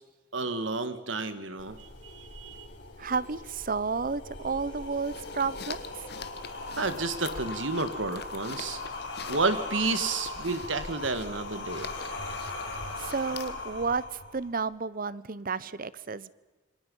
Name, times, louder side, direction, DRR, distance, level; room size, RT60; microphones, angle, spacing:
voice 1, 0.3-2.7 6.8-8.8 9.3-11.9, right 3 dB, 80° right, 11 dB, 1.9 m, -31 dB
sound 1, 1.6-14.6, left 2 dB, 75° left, 4.7 m, -39 dB
voice 2, 3.0-6.1 13.0-16.3, right 4 dB, 45° right, 18 dB, 0.8 m, -32 dB
sound 2, 4.7-13.7, left 5 dB, 55° left, 1.4 m, -45 dB
27.5 x 24.5 x 5.5 m, 1.2 s
head